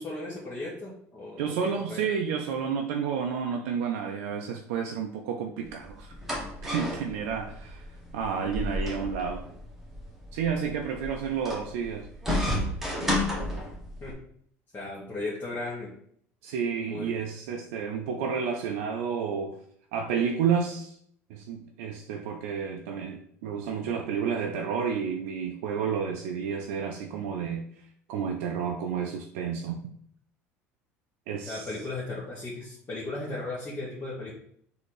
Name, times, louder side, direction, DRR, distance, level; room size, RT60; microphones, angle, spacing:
voice 1, 0.0-2.1 14.0-14.1 14.7-15.9 16.9-17.2 31.5-34.3, left 2 dB, 25° left, -7 dB, 1.5 m, -36 dB
voice 2, 1.4-6.2 6.6-7.9 8.1-9.4 10.3-12.7 16.4-19.6 19.9-20.9 21.3-27.7 28.1-29.8 31.3-31.7, right 6 dB, 70° right, 3 dB, 0.4 m, -31 dB
sound 1, 5.7-14.1, left 1 dB, 5° right, 1.4 m, -33 dB
4.1 x 2.8 x 4.7 m, 0.65 s
hypercardioid pair, 70°, 8 cm